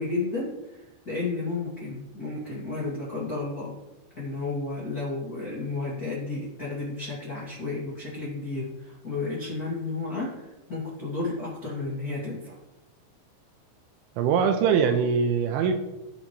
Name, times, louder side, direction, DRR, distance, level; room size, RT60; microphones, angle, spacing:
voice 1, 0.0-3.8 4.1-12.6, left 3 dB, 40° left, -7 dB, 1.3 m, -32 dB
voice 2, 14.2-15.8, right 6 dB, 85° right, 5 dB, 3.1 m, -22 dB
17.5 x 7.1 x 3.1 m, 0.99 s
omnidirectional pair, 5.6 m